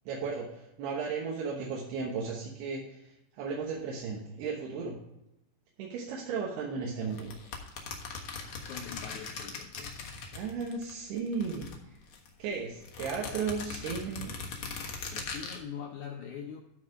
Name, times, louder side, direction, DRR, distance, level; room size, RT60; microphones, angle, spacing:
voice 1, 0.1-4.9 5.8-7.3 10.3-11.7 12.4-14.3, right 5 dB, 85° right, -2 dB, 3.3 m, -35 dB
sound 1, 7.1-10.9 11.2-12.3 12.8-15.6, left 5 dB, 60° left, 2.0 m, -40 dB
voice 2, 8.5-10.1 15.1-16.6, left 7 dB, 80° left, 2 dB, 1.7 m, -43 dB
12.5 x 4.8 x 4.8 m, 0.88 s
omnidirectional pair, 4.5 m